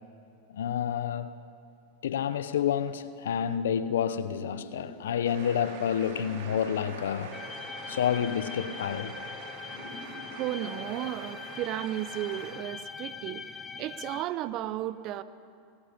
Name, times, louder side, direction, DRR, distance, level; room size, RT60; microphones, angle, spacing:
voice 1, 0.5-1.4 2.0-7.3 7.9-9.1, left 8 dB, 85° left, 0.7 m, -29 dB
sound 1, 4.1-11.4, left 2 dB, 70° left, 4.7 m, -46 dB
sound 2, 5.2-12.5, right 5 dB, 70° right, 3.6 m, -46 dB
sound 3, 7.3-14.2, left 5 dB, 20° left, 1.0 m, -42 dB
voice 2, 10.3-13.5 13.8-15.2, right 13 dB, 45° right, 0.9 m, -34 dB
24.5 x 21.0 x 5.3 m
hypercardioid pair, 115°, 0 cm